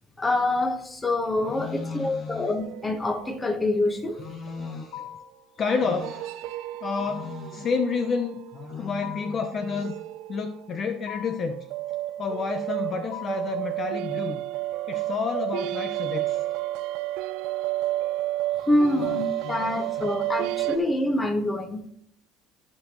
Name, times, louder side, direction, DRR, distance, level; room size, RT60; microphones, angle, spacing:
voice 1, 0.2-4.2 18.7-21.8, left 1 dB, 15° left, 1.3 m, -26 dB
voice 2, 1.5-2.5 4.2-5.1 5.6-6.5 6.8-10.0 10.3-11.7 12.2-14.4 14.9-16.4 19.4-19.6, left 5 dB, 40° left, 0.8 m, -30 dB
sound 1, 2.4-5.1 5.6-11.1 11.5-20.8, right 16 dB, 75° right, 0.4 m, -32 dB
sound 2, 4.9-5.4 7.0-7.5 9.0-9.5 11.1-11.5 13.1-13.6, left 12 dB, 75° left, 0.7 m, -40 dB
16.0 x 5.4 x 3.1 m
supercardioid pair, 110°, 0 cm